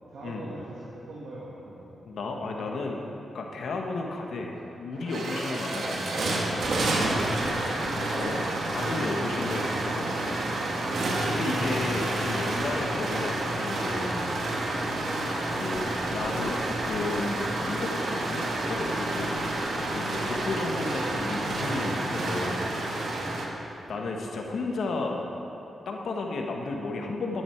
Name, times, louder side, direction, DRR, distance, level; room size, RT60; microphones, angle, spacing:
voice 1, 0.1-2.0 5.5-5.7 6.5-9.8 22.2-22.4 22.7-22.8 23.4-23.7, right 1 dB, 90° right, -7 dB, 1.8 m, -44 dB
voice 2, 2.0-3.0 3.3-6.3 8.2-8.5 8.7-10.4 11.3-14.2 15.5-18.4 18.7-19.3 19.9-22.6 23.9-25.2 25.8-27.4, left 3 dB, 75° left, 1 dB, 1.4 m, -33 dB
sound 1, 4.6-4.7 4.9-23.5, right 2 dB, 75° right, 1.6 m, -29 dB
sound 2, 6.2-9.7 10.0-13.5 13.9-23.5 23.9-24.0, right 1 dB, 55° right, 2.0 m, -46 dB
12.5 x 9.9 x 4.6 m, 3.0 s
cardioid pair, 70°, 0 cm